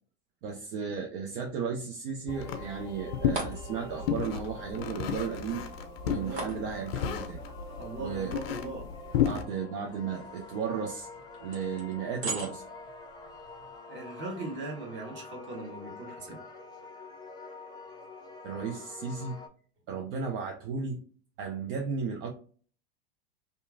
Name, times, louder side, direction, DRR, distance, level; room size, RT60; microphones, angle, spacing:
voice 1, 0.4-5.6 6.0-7.4 8.0-8.3 9.2-11.1 11.4-12.6 18.4-19.4 19.9-21.0 21.4-22.3, right 6 dB, 60° right, 0.6 m, -34 dB
sound 1, 2.1-13.8, right 3 dB, 85° right, 1.1 m, -45 dB
sound 2, 2.3-9.4, left 9 dB, 65° left, 0.5 m, -33 dB
sound 3, 2.3-19.5, left 2 dB, 15° left, 0.4 m, -47 dB
voice 2, 6.0-6.5 7.8-8.9 13.9-16.4, right 2 dB, 35° right, 1.2 m, -39 dB
2.8 x 2.4 x 2.5 m
hypercardioid pair, 90°, 31 cm